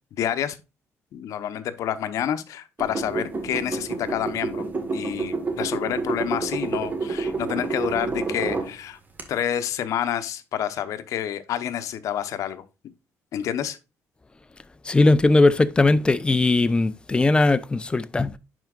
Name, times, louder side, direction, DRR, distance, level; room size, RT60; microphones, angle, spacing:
voice 1, 0.1-0.6 1.1-4.6 4.9-9.0 9.3-12.6 13.3-13.8, left 10 dB, 75° left, 0.9 m, -28 dB
sound 1, 2.8-8.7 9.2-9.3, right 3 dB, 30° right, 1.6 m, -29 dB
voice 2, 14.9-18.4, left 2 dB, 15° left, 0.5 m, -19 dB
11.0 x 4.6 x 2.4 m
cardioid pair, 120°, 6 cm